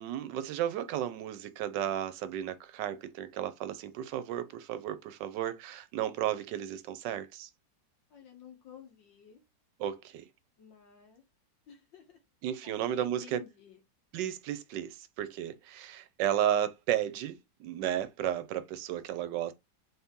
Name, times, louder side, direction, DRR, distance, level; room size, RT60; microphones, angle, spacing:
voice 1, 0.0-7.5 9.8-10.2 12.4-13.4 14.1-19.5, right 11 dB, 80° right, 1.2 m, -33 dB
voice 2, 8.1-9.4 10.6-11.2 11.7-12.2 12.6-13.8, left 6 dB, 90° left, 1.9 m, -53 dB
3.8 x 2.8 x 3.5 m
omnidirectional pair, 2.0 m